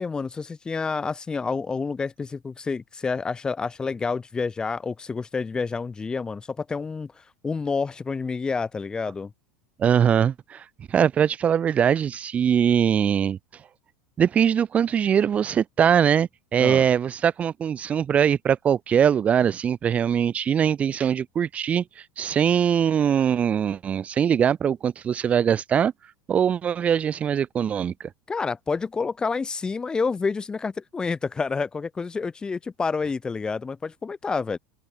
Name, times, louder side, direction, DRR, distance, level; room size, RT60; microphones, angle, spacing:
voice 1, 0.0-7.1 7.4-9.3 16.6-16.9 28.3-34.6, left 4 dB, 15° left, 4.4 m, -28 dB
voice 2, 9.8-13.4 14.2-21.8 22.2-25.9 26.3-28.1, right 8 dB, 25° right, 1.3 m, -22 dB
open air
supercardioid pair, 130°, 5 cm